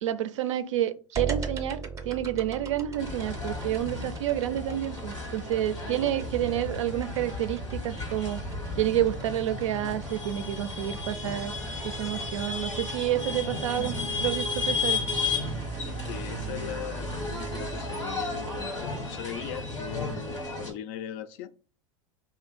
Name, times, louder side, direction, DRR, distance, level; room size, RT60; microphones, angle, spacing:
voice 1, 0.0-8.4 8.8-11.5 11.8-15.0, right 12 dB, 80° right, 0.4 m, -29 dB
sound 1, 1.2-18.6, right 5 dB, 20° right, 0.6 m, -40 dB
sound 2, 3.0-20.7, left 3 dB, 90° left, 1.3 m, -34 dB
voice 2, 5.8-6.2 15.9-21.5, left 10 dB, 55° left, 0.4 m, -39 dB
2.9 x 2.6 x 4.1 m
hypercardioid pair, 85°, 16 cm